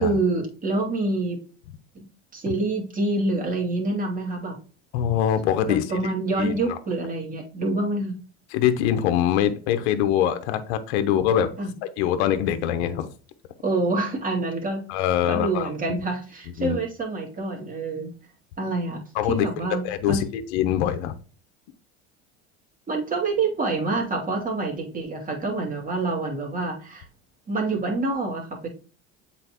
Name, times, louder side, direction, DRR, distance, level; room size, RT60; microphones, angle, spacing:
voice 1, 0.0-1.4 1.9-2.0 2.3-4.5 5.7-8.1 11.6-11.7 13.6-14.8 15.3-18.1 18.6-19.0 19.3-20.2 22.9-27.0 27.5-28.7, right 3 dB, 25° right, 0 dB, 2.4 m, -26 dB
voice 2, 4.9-5.9 6.4-6.6 8.5-11.5 12.0-13.1 14.9-15.7 16.6-16.8 19.1-19.5 19.8-21.1, left 10 dB, 75° left, 9 dB, 0.8 m, -23 dB
7.8 x 4.1 x 2.9 m, 0.38 s
supercardioid pair, 95°, 33 cm